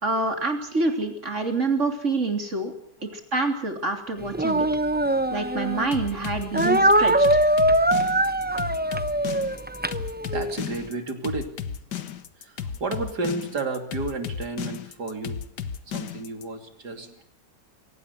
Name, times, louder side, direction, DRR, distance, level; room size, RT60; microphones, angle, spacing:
voice 1, 0.0-2.7 3.3-4.7 5.3-7.4, right 3 dB, 45° right, 5 dB, 3.5 m, -26 dB
voice 2, 4.2-5.0 10.0-12.0 12.4-15.4 15.9-17.2, right 3 dB, 70° right, 7 dB, 3.5 m, -33 dB
Speech, 4.3-5.9 6.5-10.6, right 1 dB, 15° right, 0.3 m, -22 dB
sound 1, 5.9-16.4, left 8 dB, 80° left, 1.8 m, -33 dB
23.5 x 18.0 x 8.2 m, 0.65 s
omnidirectional pair, 1.8 m